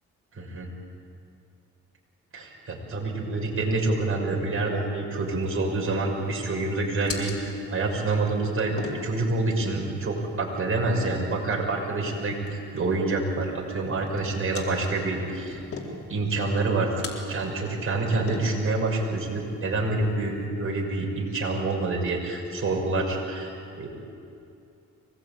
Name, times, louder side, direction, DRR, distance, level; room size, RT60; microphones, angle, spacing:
voice 1, 0.3-0.7 2.3-15.6 15.9-16.9 17.3-23.9, right 2 dB, 45° right, 0 dB, 6.3 m, -27 dB
sound 1, 5.1-20.5, left 4 dB, 45° left, 4.2 m, -43 dB
24.5 x 19.5 x 8.9 m, 2.6 s
cardioid pair, 90°, 30 cm